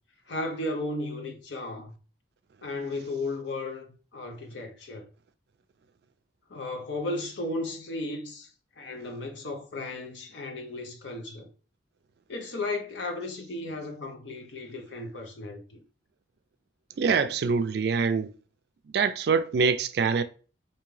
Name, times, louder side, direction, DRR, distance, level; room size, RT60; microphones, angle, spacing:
voice 1, 0.3-1.9 2.6-5.1 6.5-8.5 8.8-11.5 12.3-15.8, left 2 dB, 75° left, 0.7 m, -35 dB
voice 2, 17.0-18.3 18.9-20.2, right 5 dB, 60° right, 0.3 m, -24 dB
3.5 x 2.7 x 3.2 m
head